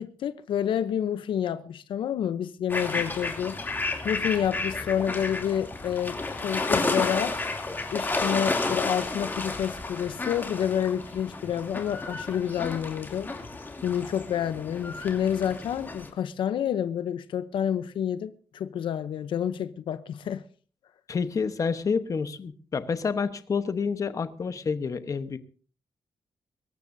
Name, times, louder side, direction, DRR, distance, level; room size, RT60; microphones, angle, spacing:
voice 1, 0.0-3.6 4.0-7.4 7.9-13.3 13.8-20.4, left 9 dB, 85° left, 0.7 m, -29 dB
sound 1, 2.7-16.1, left 3 dB, 25° left, 2.7 m, -32 dB
voice 2, 21.1-25.4, left 5 dB, 40° left, 1.0 m, -28 dB
24.0 x 14.0 x 2.7 m
cardioid pair, 115°, 8 cm